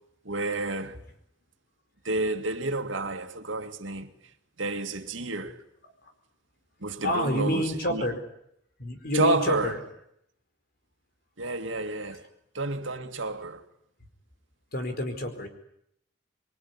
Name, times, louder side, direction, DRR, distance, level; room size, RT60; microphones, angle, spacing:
voice 1, 0.2-1.0 2.0-4.1 4.6-5.6 6.8-8.0 9.1-9.7 11.4-12.3 12.5-13.6, right 2 dB, 85° right, 2.2 m, -30 dB
voice 2, 7.0-8.2 8.8-9.8 14.7-15.5, left 1 dB, 55° left, 4.8 m, -28 dB
25.0 x 23.0 x 9.8 m
head